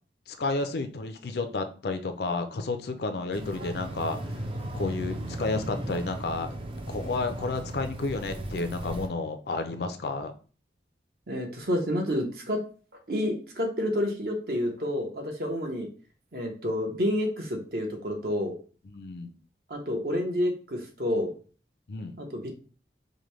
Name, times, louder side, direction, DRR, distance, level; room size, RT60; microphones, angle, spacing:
voice 1, 0.3-4.4 4.7-6.6 6.9-10.3 18.9-19.3 21.9-22.2, left 3 dB, 65° left, 8 dB, 0.5 m, -31 dB
sound 1, 3.3-9.1, right 1 dB, 30° right, 0.4 m, -36 dB
voice 2, 11.3-12.6 13.1-15.9 16.3-18.6 19.7-21.3 22.2-22.6, left 1 dB, 55° right, 2 dB, 0.9 m, -29 dB
5.0 x 2.2 x 3.1 m, 0.38 s
head